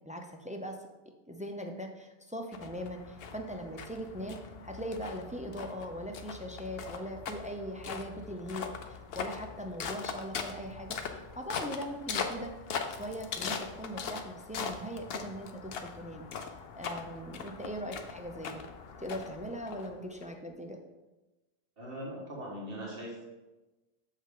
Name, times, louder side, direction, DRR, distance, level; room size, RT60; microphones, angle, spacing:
voice 1, 0.0-0.8 1.3-12.5 12.9-16.2 16.8-18.6 19.0-20.8, equal, 10° right, 3 dB, 0.3 m, -40 dB
sound 1, 2.5-20.2, left 6 dB, 70° left, 0.9 m, -41 dB
voice 2, 21.8-23.2, equal, 60° right, -3 dB, 1.8 m, -41 dB
7.0 x 5.4 x 3.7 m, 1.1 s
omnidirectional pair, 1.1 m